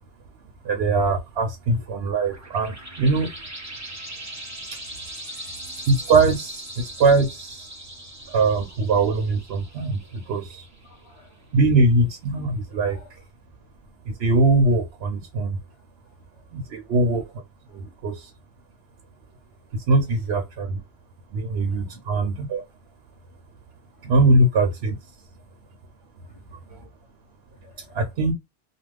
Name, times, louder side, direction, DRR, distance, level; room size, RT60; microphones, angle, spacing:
voice 1, 0.6-3.3 5.9-7.7 8.3-10.7 11.5-13.0 14.2-15.6 16.5-17.2 17.7-18.3 19.9-20.8 21.3-22.6 24.0-25.0 26.7-26.8 27.9-28.3, right 3 dB, 75° right, 0.8 m, -21 dB
sound 1, 1.8-11.0, right 1 dB, 20° right, 0.5 m, -40 dB
voice 2, 5.2-5.5 9.8-9.9 10.8-11.3 12.7-13.1 21.8-22.0 26.5-26.6 27.6-28.0, left 1 dB, 30° left, 0.7 m, -52 dB
2.4 x 2.2 x 3.2 m
omnidirectional pair, 1.1 m